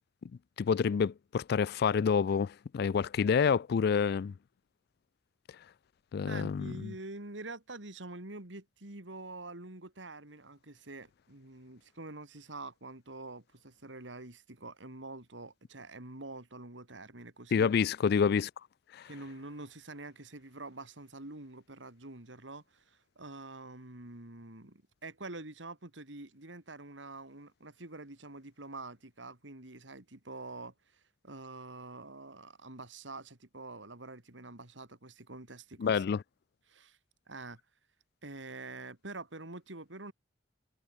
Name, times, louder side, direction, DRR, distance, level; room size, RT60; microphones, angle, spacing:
voice 1, 0.6-4.3 6.1-6.9 17.5-18.5 18.9-19.1 35.8-36.2, left 6 dB, 60° left, 0.3 m, -28 dB
voice 2, 6.3-17.7 19.0-36.0 36.7-37.0 37.3-37.6 38.2-40.1, right 2 dB, 85° right, 3.2 m, -46 dB
head